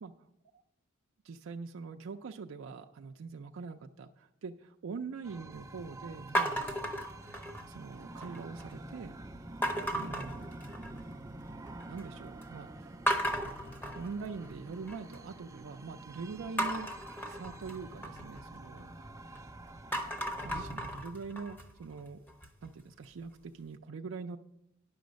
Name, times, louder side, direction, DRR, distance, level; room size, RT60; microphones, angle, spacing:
voice 1, 1.2-6.7 7.7-9.2 9.9-10.5 11.9-12.9 13.9-18.9 20.4-22.3 22.6-24.4, right 4 dB, 80° right, 4 dB, 0.4 m, -43 dB
Wind chimes - Sound Design, 5.2-20.8, right 2 dB, 15° right, 0.4 m, -48 dB
sound 1, 6.3-7.8 8.2-8.7 9.6-11.1 11.5-12.0 12.4-12.5 13.1-15.2 16.6-19.4 19.8-22.7, equal, 10° left, 0.8 m, -36 dB
10.5 x 6.3 x 5.1 m, 0.84 s
head